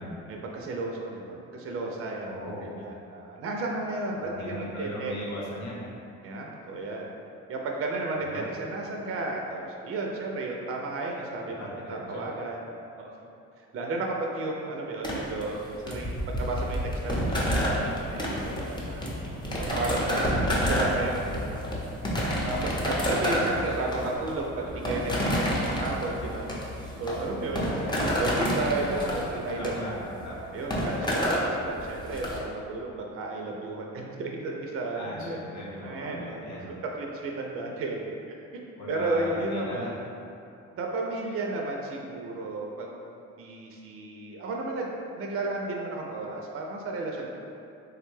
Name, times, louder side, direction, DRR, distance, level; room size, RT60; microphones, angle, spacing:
voice 1, 0.3-5.1 6.2-7.1 7.5-12.6 13.0-13.1 13.6-16.8 17.0-21.6 22.4-26.5 27.0-27.6 28.2-29.7 30.5-35.4 35.8-36.6 37.0-38.4 38.9-39.9 40.8-42.9 43.4-44.9 45.2-47.3, right 2 dB, 45° right, -1 dB, 0.4 m, -33 dB
voice 2, 2.2-2.7 4.1-5.8 8.1-8.5 11.4-12.3 23.2-23.8 24.6-24.7 27.5-27.9 28.7-30.4 30.8-31.2 34.9-36.7 38.7-39.9, equal, 65° left, -5 dB, 0.9 m, -38 dB
sound 1, 15.0-32.4, equal, 15° left, 0.6 m, -29 dB
3.3 x 2.2 x 3.1 m, 2.6 s
cardioid pair, 90°, 30 cm